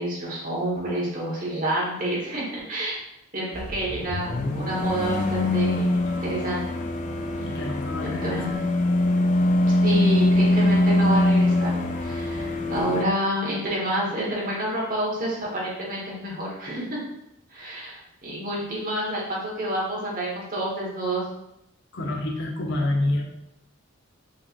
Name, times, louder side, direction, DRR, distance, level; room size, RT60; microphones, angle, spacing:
voice 1, 0.0-3.0 3.3-6.6 8.0-8.5 9.8-11.7 12.0-17.0 17.5-21.2, right 1 dB, 40° right, -5 dB, 1.5 m, -28 dB
sound 1, 3.5-13.0, left 1 dB, 35° left, 0.4 m, -23 dB
voice 2, 7.4-8.6 21.9-23.2, left 1 dB, 55° left, 1 dB, 0.8 m, -27 dB
5.6 x 3.4 x 2.6 m, 0.83 s
head